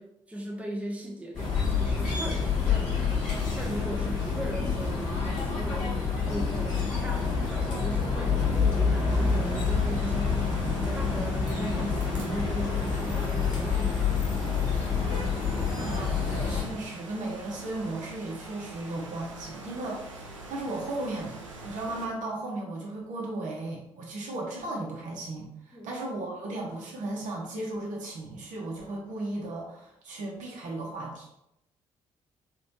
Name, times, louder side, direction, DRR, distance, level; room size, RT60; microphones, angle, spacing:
voice 1, 0.0-6.0 6.3-10.6 10.8-14.1 14.4-15.1 25.7-25.9, right 1 dB, 10° right, 0 dB, 0.8 m, -38 dB
sound 1, 1.3-16.6, left 5 dB, 50° left, 1.4 m, -27 dB
sound 2, 9.1-22.1, right 3 dB, 85° right, 0.4 m, -44 dB
voice 2, 15.8-31.3, right 2 dB, 55° right, -2 dB, 1.0 m, -36 dB
3.4 x 3.2 x 2.9 m, 0.81 s
figure-of-eight pair, 45°, 15 cm